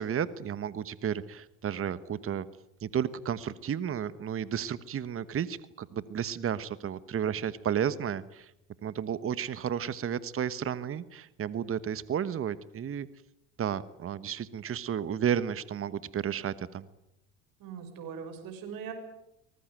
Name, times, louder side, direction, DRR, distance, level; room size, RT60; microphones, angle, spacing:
voice 1, 0.0-2.5 2.8-8.5 8.8-13.1 13.6-16.8, right 8 dB, 35° right, 16 dB, 1.2 m, -32 dB
voice 2, 17.6-18.9, right 7 dB, 60° right, 7 dB, 6.2 m, -40 dB
24.0 x 19.5 x 9.2 m, 0.84 s
hypercardioid pair, 75°, 38 cm